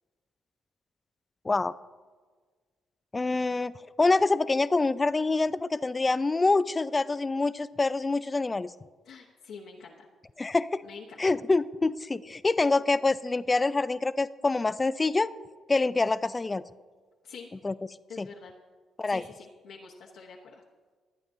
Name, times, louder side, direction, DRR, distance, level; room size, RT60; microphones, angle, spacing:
voice 1, 3.1-8.7 10.4-10.8 11.2-15.3 15.7-16.6 17.6-17.7 18.2-18.3 19.0-19.2, left 3 dB, 25° left, 15 dB, 0.4 m, -26 dB
voice 2, 9.0-10.1 10.8-11.2 17.2-17.5 18.1-18.5 19.0-20.6, left 5 dB, 75° left, -3 dB, 1.0 m, -46 dB
23.0 x 8.9 x 2.7 m, 1.5 s
cardioid pair, 90°, 0 cm